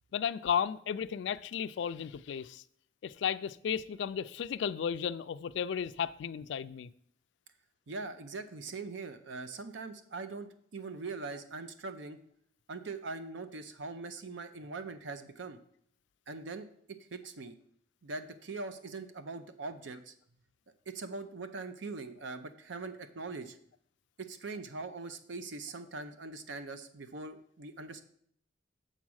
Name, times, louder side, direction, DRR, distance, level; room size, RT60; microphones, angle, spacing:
voice 1, 0.1-2.6 3.0-6.9, left 8 dB, 75° left, 0.3 m, -34 dB
voice 2, 7.9-12.2 12.7-15.6 16.3-16.7 17.1-17.6 18.0-20.1 20.9-23.6 24.2-28.0, right 3 dB, 85° right, 0.7 m, -42 dB
7.2 x 4.0 x 6.2 m
head